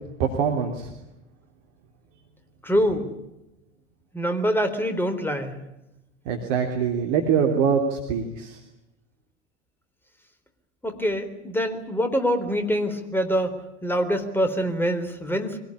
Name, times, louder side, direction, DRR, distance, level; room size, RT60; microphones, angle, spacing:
voice 1, 0.2-0.9 6.2-8.6, right 6 dB, 55° right, 3 dB, 3.3 m, -24 dB
voice 2, 2.6-3.1 4.1-5.6 10.8-15.6, equal, 5° left, 8 dB, 3.9 m, -25 dB
24.0 x 18.0 x 9.9 m, 0.93 s
figure-of-eight pair, 80°, 36 cm